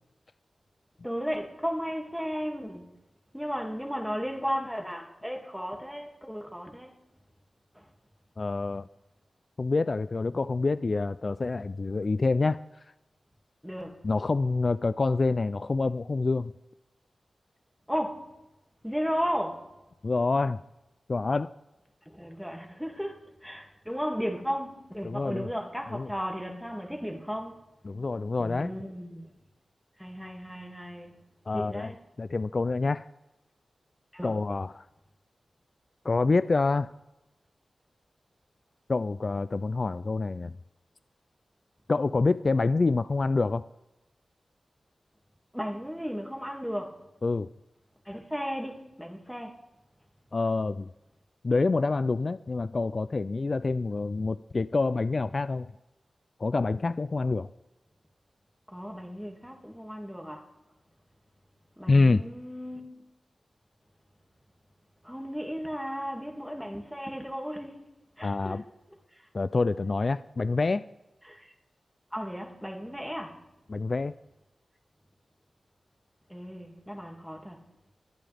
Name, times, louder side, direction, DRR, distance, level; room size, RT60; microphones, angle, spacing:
voice 1, 1.0-2.9 3.3-7.0 7.7-7.9 13.6-14.1 17.9-18.3 18.8-19.7 22.1-27.6 28.4-29.3 30.0-31.2 31.5-32.0 34.1-34.4 45.5-47.0 48.1-49.6 58.7-60.5 61.8-63.0 65.0-67.8 68.2-68.6 69.2-69.3 71.2-71.5 72.1-73.4 76.3-77.7, equal, ahead, 2.3 m, -35 dB
voice 2, 8.4-8.9 9.6-12.6 14.0-16.5 20.0-20.6 21.1-21.5 25.0-25.5 25.9-26.1 27.9-28.7 31.5-31.9 32.2-33.1 34.2-34.8 36.0-36.9 38.9-40.5 41.9-43.6 47.2-47.5 50.3-50.9 51.4-55.7 56.4-57.5 61.9-62.2 68.2-68.6 69.3-70.8 73.7-74.1, left 3 dB, 55° left, 0.3 m, -27 dB
21.5 x 8.9 x 3.5 m
cardioid pair, 40°, 0 cm